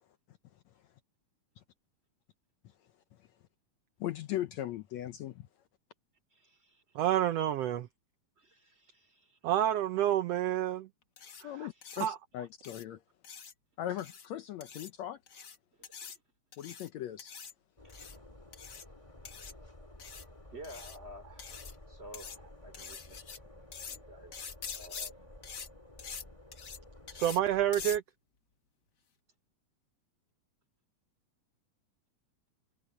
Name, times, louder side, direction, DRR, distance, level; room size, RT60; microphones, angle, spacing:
voice 1, 4.0-5.5 11.4-13.0 13.8-15.2 16.6-17.3, left 12 dB, 70° left, 1.8 m, -39 dB
voice 2, 6.3-7.0 8.4-9.4 11.4-11.7 15.8-15.9 17.8-17.9 20.5-21.6 21.9-23.2 23.9-24.5 24.7-25.2, equal, 20° right, 3.6 m, -51 dB
voice 3, 6.9-7.9 9.4-10.9 11.4-11.7 12.0-12.2 27.1-28.0, right 11 dB, 75° right, 1.5 m, -29 dB
sound 1, 11.2-11.4 11.8-12.1 12.6-12.8 13.2-13.5 14.0-14.3 14.6-14.9 15.3-15.6 15.8-16.2 16.5-16.9 17.2-17.5 17.9-18.2 18.5-18.8 19.2-19.5 20.0-20.2 20.6-21.0 21.4-21.7 22.1-22.4 22.7-23.4 23.7-24.0 24.3-25.1 25.4-25.7 26.0-26.2 26.5-26.8 27.1-27.4 27.7-28.0, left 6 dB, 40° left, 1.7 m, -44 dB
sound 2, 17.8-28.0, left 1 dB, 10° left, 2.2 m, -53 dB
omnidirectional pair, 3.6 m